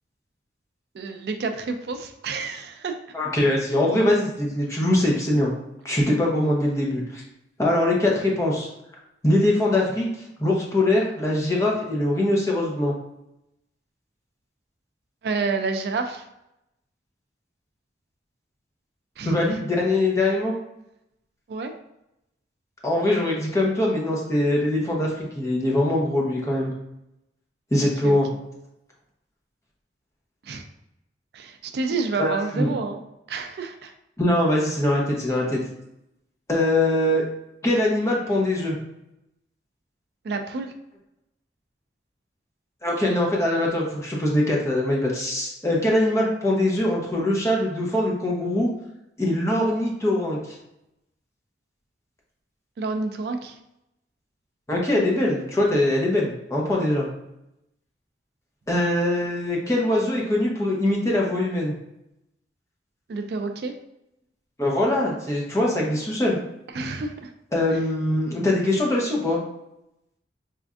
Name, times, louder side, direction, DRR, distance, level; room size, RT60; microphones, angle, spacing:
voice 1, 0.9-3.0 15.2-16.3 19.2-19.3 21.5-21.7 27.8-28.2 30.4-30.6 31.3-33.0 33.3-33.9 40.2-40.7 52.8-53.6 63.1-63.8 66.7-67.3, right 4 dB, 65° right, 6 dB, 0.3 m, -29 dB
voice 2, 3.1-5.5 5.8-7.2 7.6-8.7 9.2-10.1 10.4-12.9 19.2-20.5 22.8-26.7 27.7-28.3 32.2-32.7 34.2-35.6 36.5-37.2 37.6-38.8 42.8-48.7 49.2-50.6 54.7-57.1 58.7-61.7 64.6-66.4 67.5-69.4, left 1 dB, 15° left, -3 dB, 0.7 m, -22 dB
4.2 x 2.5 x 2.4 m, 0.85 s
head